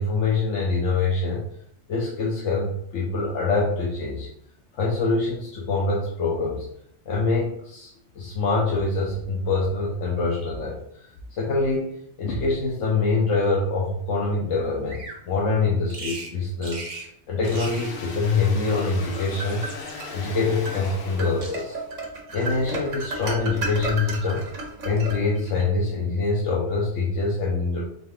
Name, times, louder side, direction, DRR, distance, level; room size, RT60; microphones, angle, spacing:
voice 1, 0.0-1.4 1.9-4.3 4.7-6.7 7.1-10.8 11.3-19.6 20.1-21.8 22.3-24.5 24.8-27.9, left 3 dB, 85° left, -3 dB, 1.1 m, -25 dB
Bird vocalization bird call bird song, 14.9-15.2 15.9-16.3 16.6-17.1 17.4-17.9 19.0-19.9 20.7-21.2 21.4-21.9 22.4-22.7, right 3 dB, 45° right, 0.8 m, -39 dB
sound 1, 17.4-22.0, left 4 dB, 55° left, 0.8 m, -38 dB
sound 2, 18.8-20.1 20.7-20.8 21.2-25.6, right 2 dB, 90° right, 1.3 m, -33 dB
4.0 x 3.3 x 3.5 m, 0.69 s
omnidirectional pair, 1.2 m